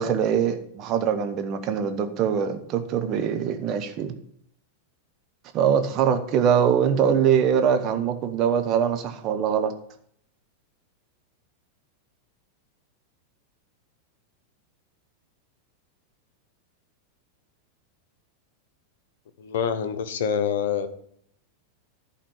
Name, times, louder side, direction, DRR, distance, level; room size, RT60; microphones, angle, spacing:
voice 1, 0.0-4.1 5.5-9.7, right 8 dB, 35° right, 6 dB, 1.1 m, -23 dB
voice 2, 19.4-20.9, left 7 dB, 55° left, 8 dB, 1.0 m, -26 dB
11.5 x 4.3 x 7.4 m, 0.66 s
figure-of-eight pair, 90°, 0 cm